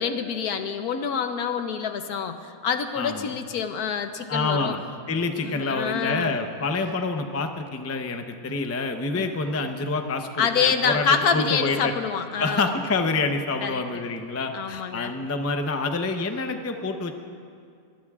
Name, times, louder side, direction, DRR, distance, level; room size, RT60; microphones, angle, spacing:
voice 1, 0.0-4.7 5.4-6.3 9.1-9.3 10.4-12.7 13.6-14.0 14.5-15.1, left 6 dB, 75° left, 8 dB, 1.3 m, -26 dB
voice 2, 3.0-3.3 4.3-4.8 5.1-11.9 12.4-17.1, left 3 dB, 20° left, 5 dB, 0.4 m, -27 dB
24.5 x 19.5 x 2.4 m, 2.3 s
omnidirectional pair, 1.7 m